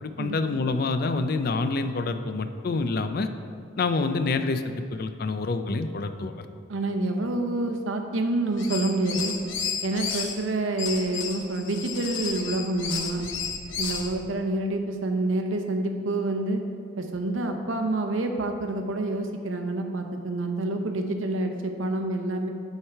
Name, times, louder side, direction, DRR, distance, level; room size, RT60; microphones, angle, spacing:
voice 1, 0.0-3.3 3.8-6.4, left 3 dB, 50° left, 9 dB, 0.4 m, -27 dB
voice 2, 6.7-9.4 9.8-13.3 13.8-16.6 17.0-22.5, right 2 dB, 85° right, 5 dB, 0.8 m, -27 dB
sound 1, 8.5-10.3 10.8-14.1, left 6 dB, 75° left, 0.9 m, -32 dB
9.7 x 4.6 x 4.5 m, 2.4 s
head